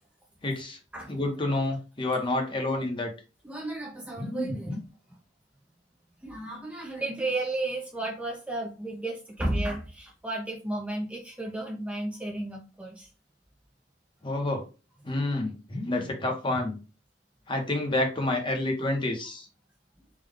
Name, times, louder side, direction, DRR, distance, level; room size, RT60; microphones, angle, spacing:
voice 1, 0.4-0.8 1.1-3.1 4.2-4.8 14.2-14.6 15.0-16.8 17.5-19.5, left 2 dB, 25° left, 3 dB, 0.8 m, -29 dB
voice 2, 3.4-4.8 6.2-13.1, right 2 dB, 5° right, -1 dB, 0.5 m, -33 dB
3.6 x 2.2 x 3.4 m, 0.32 s
head